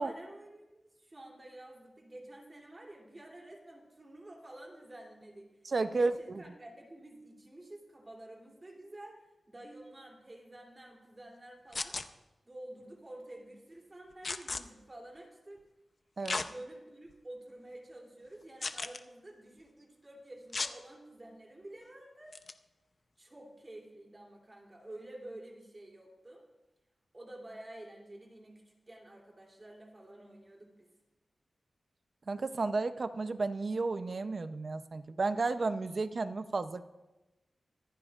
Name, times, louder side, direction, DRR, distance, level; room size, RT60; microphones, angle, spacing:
voice 1, 0.0-5.5 5.9-12.0 12.4-15.6 16.2-22.3 23.2-26.4 27.1-30.9, right 1 dB, 25° right, 0 dB, 3.0 m, -50 dB
voice 2, 5.6-6.1 16.2-16.4 32.3-36.8, right 3 dB, 45° right, 10 dB, 0.6 m, -32 dB
sound 1, 11.7-12.1 14.2-14.6 16.3-16.5 17.1-17.2 18.6-19.0 20.5-20.7 22.3-22.5, left 3 dB, 40° left, 0.6 m, -35 dB
25.0 x 15.0 x 2.5 m, 1.0 s
wide cardioid pair, 140°, 0 cm